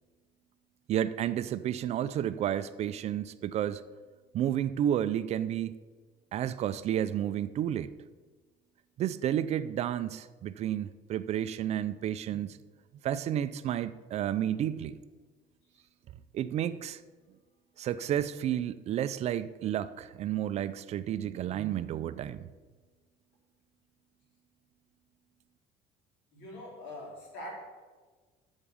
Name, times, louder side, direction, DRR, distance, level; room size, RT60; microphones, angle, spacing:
voice 1, 0.9-3.8 4.3-5.7 6.3-7.9 9.0-12.6 13.0-15.0 16.3-17.0 17.8-22.5, right 11 dB, 35° right, 14 dB, 0.3 m, -31 dB
voice 2, 26.3-27.5, left 1 dB, 85° left, -2 dB, 3.9 m, -43 dB
8.7 x 7.2 x 7.0 m, 1.4 s
cardioid pair, 180°, 18 cm